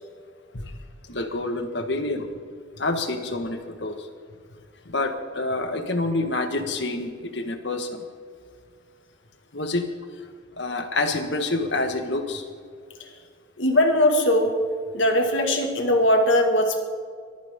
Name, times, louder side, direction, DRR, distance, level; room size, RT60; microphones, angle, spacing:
voice 1, 1.1-2.3 2.8-4.1 4.8-8.0 9.5-9.8 10.6-12.4, left 2 dB, 60° left, 6 dB, 1.7 m, -27 dB
voice 2, 13.6-14.6 14.9-16.8, left 1 dB, 80° left, 4 dB, 2.1 m, -20 dB
23.0 x 15.0 x 3.8 m, 2.1 s
head